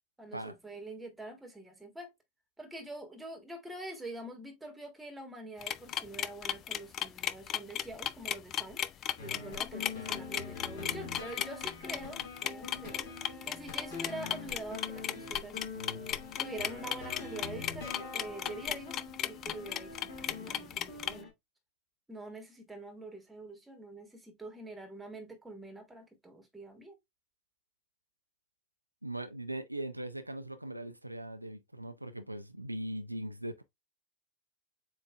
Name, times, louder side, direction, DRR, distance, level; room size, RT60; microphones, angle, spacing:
voice 1, 0.2-2.1 2.6-8.8 9.2-15.6 16.4-19.0 19.2-21.3 22.1-27.0, right 2 dB, 5° right, 1.4 m, -45 dB
sound 1, 5.6-21.1, left 10 dB, 30° left, 0.3 m, -35 dB
sound 2, 9.2-21.3, left 4 dB, 45° left, 2.1 m, -44 dB
voice 2, 29.0-33.6, right 1 dB, 85° right, 0.4 m, -40 dB
7.4 x 2.6 x 2.3 m
figure-of-eight pair, 90°, 0 cm